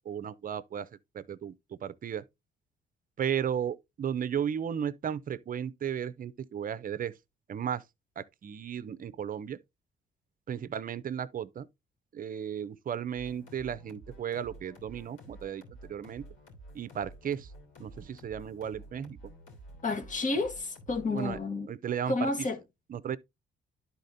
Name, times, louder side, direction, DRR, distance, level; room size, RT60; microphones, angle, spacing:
voice 1, 0.1-0.9 1.1-2.2 3.2-7.1 7.5-7.8 8.2-9.6 10.5-11.7 12.1-16.2 16.7-17.5 17.8-19.2 21.1-21.4 21.7-22.3 22.9-23.2, right 8 dB, 45° right, 0.6 m, -34 dB
sound 1, 13.1-21.4, right 1 dB, 80° left, 3.3 m, -51 dB
voice 2, 19.8-21.7 22.1-22.6, left 3 dB, 40° left, 1.6 m, -30 dB
11.5 x 4.2 x 2.6 m
cardioid pair, 90°, 20 cm